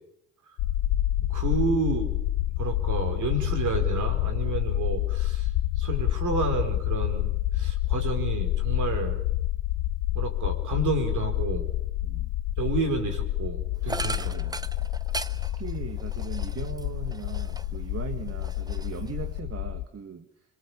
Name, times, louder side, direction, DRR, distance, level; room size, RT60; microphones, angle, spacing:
sound 1, 0.6-19.8, left 14 dB, 85° left, 0.8 m, -28 dB
voice 1, 1.2-2.1 2.6-5.5 5.8-9.2 10.1-11.7 12.6-14.3, right 3 dB, 60° right, 5 dB, 5.0 m, -30 dB
sound 2, 13.9-17.9 18.2-19.4, right 2 dB, 10° right, 0.8 m, -38 dB
voice 2, 14.2-14.7 15.6-20.3, right 6 dB, 45° right, 6 dB, 1.7 m, -39 dB
26.0 x 22.0 x 7.1 m, 0.77 s
supercardioid pair, 60°, 34 cm